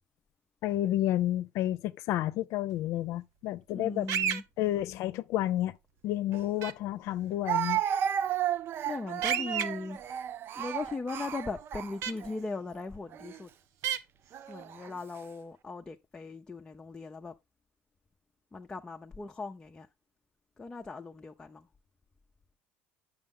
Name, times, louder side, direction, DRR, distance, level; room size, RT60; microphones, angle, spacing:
voice 1, 0.6-4.1 4.6-5.8 6.0-7.8, left 13 dB, 70° left, 0.7 m, -30 dB
voice 2, 3.7-4.4 8.9-10.0 10.5-13.5 14.5-17.3 18.5-19.9 20.6-21.7, left 3 dB, 15° left, 0.7 m, -39 dB
sound 1, 4.1-4.4 6.6-6.7 9.2-9.6 12.0-12.1 13.8-14.0, right 8 dB, 65° right, 0.8 m, -29 dB
Speech, 6.3-6.4 7.5-12.3 13.1-13.4 14.3-14.9, right 10 dB, 45° right, 0.4 m, -33 dB
8.7 x 6.3 x 3.7 m
cardioid pair, 120°, 5 cm